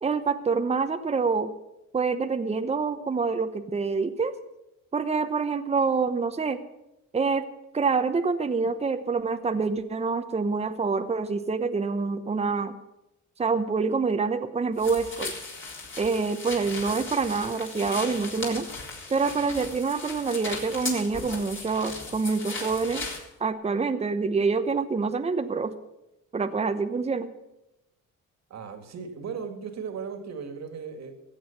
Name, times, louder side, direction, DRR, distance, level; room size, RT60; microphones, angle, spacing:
voice 1, 0.0-1.5 1.9-4.3 4.9-6.6 7.1-7.5 7.7-12.8 13.4-15.3 16.0-18.7 19.1-23.1 23.4-25.7 26.3-27.3, right 4 dB, 20° right, 9 dB, 0.9 m, -26 dB
sound 1, 14.8-23.2, left 3 dB, 40° left, 3.8 m, -37 dB
voice 2, 28.5-31.1, right 6 dB, 60° right, 7 dB, 2.1 m, -36 dB
15.5 x 8.0 x 7.1 m, 0.91 s
cardioid pair, 90°, 30 cm